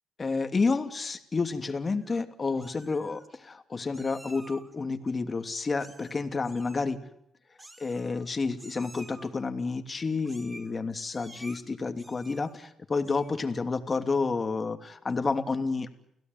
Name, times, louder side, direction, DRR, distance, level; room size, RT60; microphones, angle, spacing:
voice 1, 0.2-7.0 7.8-16.0, left 4 dB, 30° left, 8 dB, 2.8 m, -30 dB
Meow, 1.8-2.2 2.6-3.3 3.9-4.7 5.8-6.2 6.4-6.9 7.6-8.3 8.6-9.3 10.2-10.7 11.1-11.6 12.0-12.6 13.0-13.4, right 1 dB, 20° right, 4.4 m, -51 dB
30.0 x 17.0 x 9.5 m, 0.79 s
cardioid pair, 90°, 0 cm